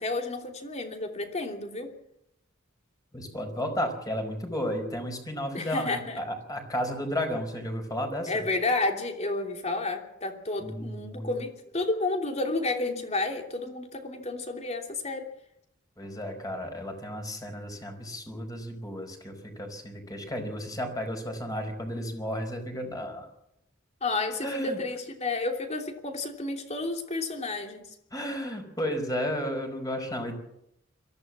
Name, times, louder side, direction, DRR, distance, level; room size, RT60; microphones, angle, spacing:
voice 1, 0.0-1.9 5.5-6.2 8.3-15.3 24.0-27.8, left 2 dB, 35° left, 4 dB, 3.0 m, -31 dB
voice 2, 3.1-8.3 10.6-11.3 16.0-23.3 24.4-24.8 28.1-30.3, equal, 20° left, 5 dB, 4.7 m, -33 dB
23.0 x 15.0 x 7.4 m, 0.80 s
head